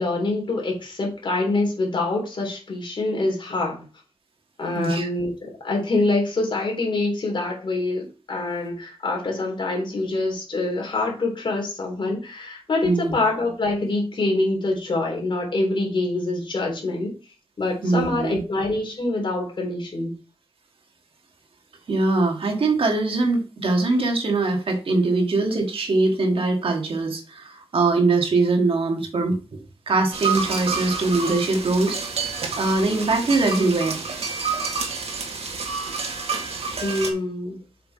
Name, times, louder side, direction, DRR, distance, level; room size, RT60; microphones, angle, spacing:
voice 1, 0.0-3.8 4.6-17.1 17.6-20.1 36.8-37.6, left 2 dB, 50° left, 0 dB, 3.4 m, -25 dB
voice 2, 4.7-5.1 12.8-13.2 17.8-18.4 21.9-32.0 32.6-34.0, right 3 dB, 60° right, 3 dB, 1.7 m, -22 dB
sound 1, 30.1-37.1, right 5 dB, 85° right, 1.8 m, -29 dB
7.6 x 5.9 x 4.2 m, 0.33 s
wide cardioid pair, 170°, 10 cm